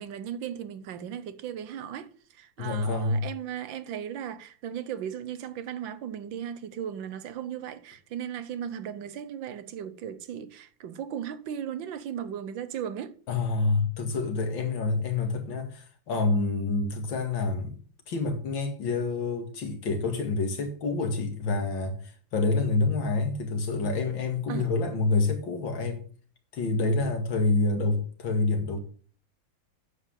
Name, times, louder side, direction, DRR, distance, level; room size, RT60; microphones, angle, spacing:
voice 1, 0.0-13.2 24.5-24.7, right 9 dB, 85° right, 1.7 m, -36 dB
voice 2, 2.6-3.3 13.3-17.7 18.1-26.0 26.5-28.8, left 3 dB, 90° left, 2.7 m, -27 dB
9.6 x 7.5 x 6.4 m
omnidirectional pair, 2.0 m